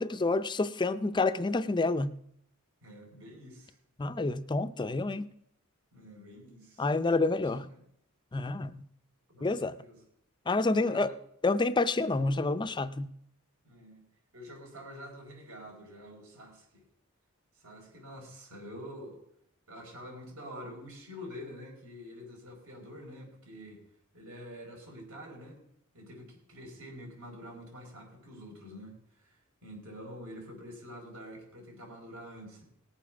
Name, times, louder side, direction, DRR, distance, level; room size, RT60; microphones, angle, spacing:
voice 1, 0.0-2.1 4.0-5.3 6.8-7.7 8.3-8.8 9.4-9.7 10.5-11.1 11.4-13.1, left 3 dB, 20° left, 0.4 m, -28 dB
voice 2, 2.8-3.8 5.9-6.9 7.3-7.8 9.3-10.0 10.7-11.2 13.6-14.0 14.3-16.8 17.5-19.2 19.7-23.8 24.1-25.6 25.9-32.6, equal, 70° right, 4.7 m, -47 dB
18.5 x 7.3 x 5.9 m
head